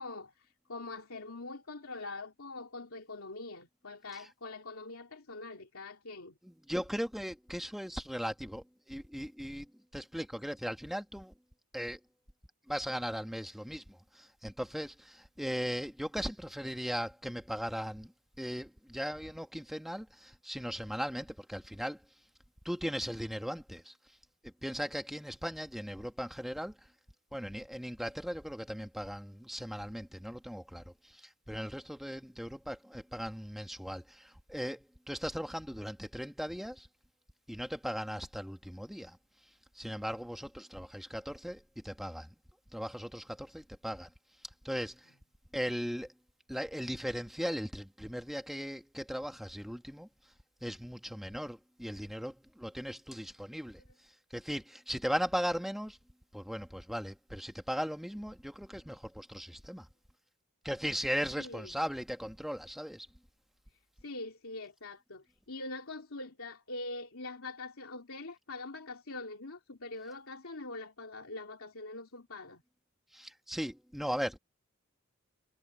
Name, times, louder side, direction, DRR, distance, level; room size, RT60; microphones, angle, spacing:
voice 1, 0.0-6.3 61.4-61.8 64.0-72.6, left 2 dB, 80° left, 2.8 m, -43 dB
voice 2, 6.4-11.3 11.7-12.0 12.7-18.1 18.4-22.0 22.6-23.9 24.4-26.8 27.3-36.9 37.5-39.2 39.7-42.3 42.7-44.1 44.6-45.1 45.5-46.1 46.5-50.1 50.6-53.8 54.3-56.0 56.3-59.9 60.6-63.1 73.1-74.4, equal, ahead, 1.5 m, -38 dB
head